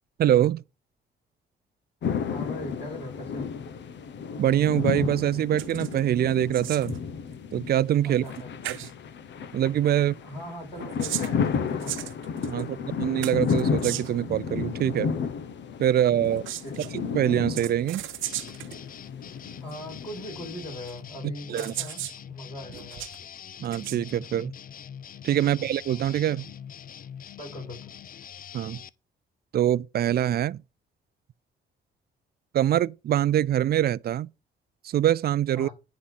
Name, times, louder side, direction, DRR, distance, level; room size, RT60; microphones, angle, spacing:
voice 1, 0.2-0.6 4.4-7.0 7.5-8.2 8.7-8.8 9.5-10.1 12.5-15.1 15.8-16.4 16.9-18.1 21.2-21.7 23.6-24.5 25.2-26.5 28.5-28.8 29.5-30.6 32.5-34.3 34.8-35.7, right 11 dB, 50° right, 0.4 m, -24 dB
sound 1, 2.0-20.9, left 6 dB, 65° left, 1.2 m, -33 dB
voice 2, 2.3-3.5 8.0-8.5 10.2-12.1 12.6-12.8 16.6-16.8 19.6-23.0 25.4-25.5 27.4-27.9 35.5-35.7, left 1 dB, 30° left, 6.1 m, -40 dB
sound 2, 5.6-6.0 6.3-7.0 8.2-8.4 8.6-8.9 10.7-12.6 13.2-14.2 16.2-16.9 17.5-18.8 19.7-19.8 20.9-21.0 21.6-22.2 22.7-23.2 23.6-24.0, right 14 dB, 85° right, 0.9 m, -36 dB
sound 3, 18.2-28.9, left 8 dB, 45° left, 0.5 m, -44 dB
10.0 x 4.2 x 7.6 m
cardioid pair, 90°, 20 cm